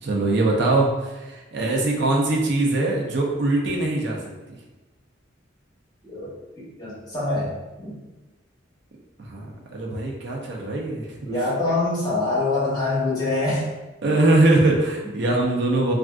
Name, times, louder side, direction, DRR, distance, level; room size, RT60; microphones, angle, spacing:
voice 1, 0.0-4.2 9.2-11.1 14.0-15.9, right 2 dB, 60° right, -1 dB, 0.5 m, -22 dB
voice 2, 6.6-8.0 11.2-13.7 15.0-15.1, left 2 dB, 20° left, -8 dB, 1.0 m, -25 dB
3.4 x 2.4 x 2.3 m, 1.1 s
head